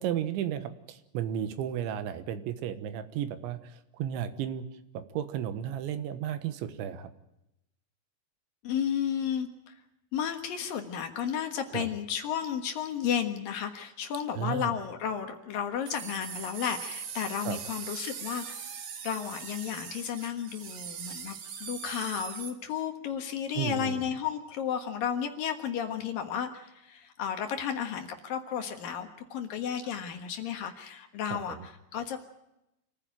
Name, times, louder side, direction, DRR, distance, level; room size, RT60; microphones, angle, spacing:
voice 1, 0.0-4.7 4.9-7.1 11.7-11.9 14.4-14.7 17.5-17.6 23.6-24.0 31.5-31.6, right 10 dB, 75° right, 11 dB, 3.4 m, -33 dB
voice 2, 8.6-9.7 10.1-18.6 19.0-21.3 21.6-32.2, left 8 dB, 65° left, 5 dB, 2.5 m, -33 dB
sound 1, 15.8-22.5, right 7 dB, 55° right, 2.4 m, -41 dB
26.0 x 15.0 x 9.2 m, 0.89 s
omnidirectional pair, 5.7 m